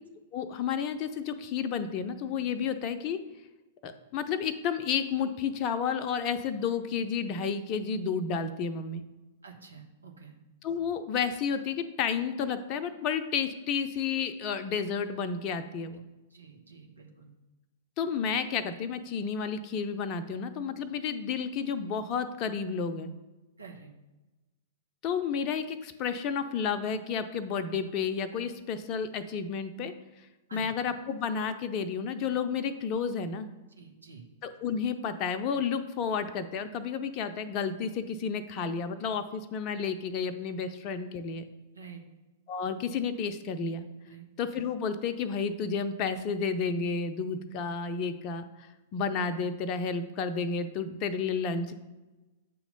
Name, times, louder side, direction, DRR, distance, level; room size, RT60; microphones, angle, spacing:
voice 1, 0.3-3.2 3.8-9.0 10.6-16.0 18.0-23.1 25.0-29.9 30.5-33.5 34.4-41.4 42.5-43.8 44.4-48.4 48.9-51.8, left 6 dB, 40° left, 10 dB, 0.6 m, -31 dB
voice 2, 9.4-10.4 16.3-17.3 23.6-23.9 30.5-30.7 33.8-34.2 41.7-42.0 44.0-44.2, right 5 dB, 85° right, 1 dB, 1.1 m, -48 dB
8.3 x 3.1 x 5.2 m, 1.1 s
figure-of-eight pair, 105°, 0 cm